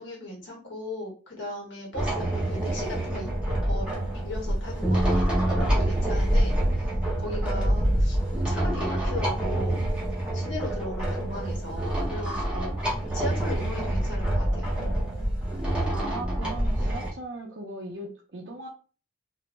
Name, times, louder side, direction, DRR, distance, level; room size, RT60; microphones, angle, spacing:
voice 1, 0.0-3.3 3.7-3.9 4.2-5.0 5.5-6.9 7.2-8.2 8.5-9.8 10.3-14.7, left 1 dB, 70° left, -2 dB, 1.2 m, -37 dB
sound 1, 1.9-17.1, right 1 dB, 5° right, 0.7 m, -26 dB
voice 2, 15.9-18.7, right 2 dB, 65° right, -1 dB, 0.5 m, -38 dB
2.5 x 2.1 x 3.0 m, 0.37 s
head